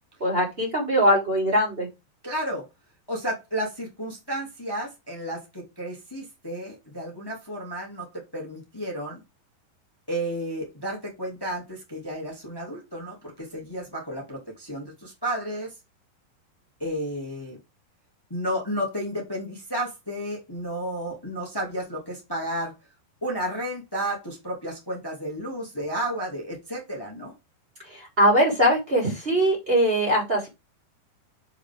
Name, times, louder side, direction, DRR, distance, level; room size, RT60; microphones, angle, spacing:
voice 1, 0.2-1.9 27.9-30.5, equal, 15° right, 2.8 m, -21 dB
voice 2, 2.2-2.6 3.1-8.1 8.3-9.2 10.1-15.7 16.8-17.6 18.3-22.8 23.2-27.3, right 1 dB, 10° left, 1.5 m, -32 dB
7.0 x 5.2 x 3.6 m
omnidirectional pair, 5.1 m